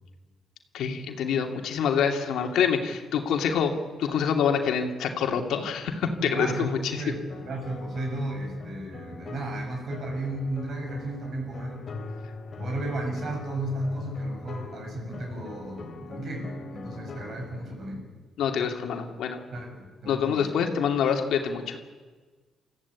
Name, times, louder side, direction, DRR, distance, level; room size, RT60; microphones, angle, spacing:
voice 1, 0.7-3.7 4.0-7.0 18.4-19.4 20.1-21.8, left 7 dB, 80° left, 4 dB, 2.6 m, -26 dB
voice 2, 6.0-11.9 12.6-18.1 19.5-20.5, right 1 dB, 45° right, 2 dB, 6.6 m, -34 dB
sound 1, 7.3-17.7, left 4 dB, 40° left, 2.8 m, -42 dB
29.0 x 15.0 x 8.5 m, 1.4 s
cardioid pair, 140°, 0 cm